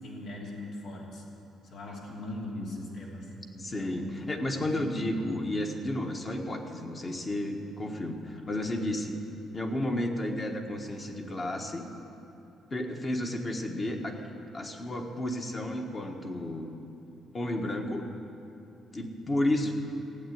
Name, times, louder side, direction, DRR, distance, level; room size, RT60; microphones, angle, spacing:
voice 1, 0.0-1.2 1.6-4.2 4.5-5.1 8.3-8.5, left 1 dB, 70° left, -3 dB, 2.9 m, -40 dB
voice 2, 2.5-2.9 3.6-9.2 9.5-11.8 12.7-14.2 14.5-16.7 17.3-18.1 18.9-19.7, left 1 dB, 25° left, 3 dB, 1.4 m, -32 dB
15.5 x 8.3 x 9.3 m, 2.8 s
cardioid pair, 135°, 0 cm